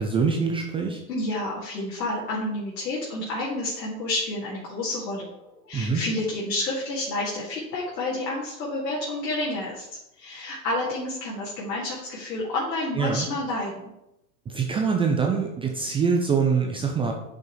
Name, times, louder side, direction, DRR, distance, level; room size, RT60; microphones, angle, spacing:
voice 1, 0.0-1.0 5.7-6.0 13.0-13.3 14.5-17.1, right 5 dB, 10° right, 2 dB, 0.5 m, -24 dB
voice 2, 1.1-5.3 5.7-9.9 10.2-13.8, left 2 dB, 75° left, -6 dB, 2.5 m, -29 dB
8.9 x 5.7 x 3.3 m, 0.89 s
hypercardioid pair, 115°, 49 cm